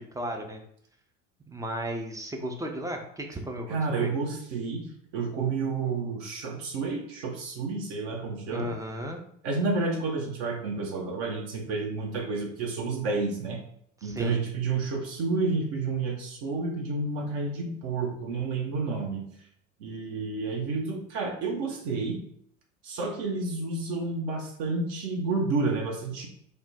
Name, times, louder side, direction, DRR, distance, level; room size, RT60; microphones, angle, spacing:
voice 1, 0.1-0.6 1.5-4.1 8.5-9.2 14.0-14.4, equal, 10° right, 3 dB, 0.4 m, -35 dB
voice 2, 3.7-4.9 5.1-8.7 9.4-13.6 14.0-19.3 19.8-22.2 22.8-26.3, right 3 dB, 60° right, 1 dB, 0.8 m, -30 dB
3.4 x 2.1 x 4.1 m, 0.68 s
hypercardioid pair, 70°, 40 cm